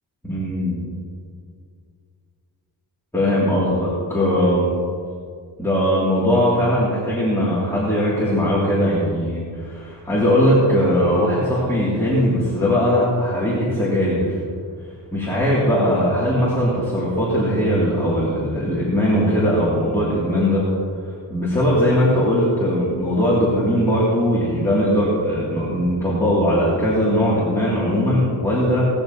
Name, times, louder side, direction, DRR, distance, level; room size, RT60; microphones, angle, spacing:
voice 1, 0.2-0.8 3.1-4.7 5.6-14.4 15.1-20.6 21.3-28.9, equal, 5° left, -9 dB, 2.8 m, -19 dB
18.0 x 13.0 x 3.0 m, 2.2 s
wide cardioid pair, 140°, 42 cm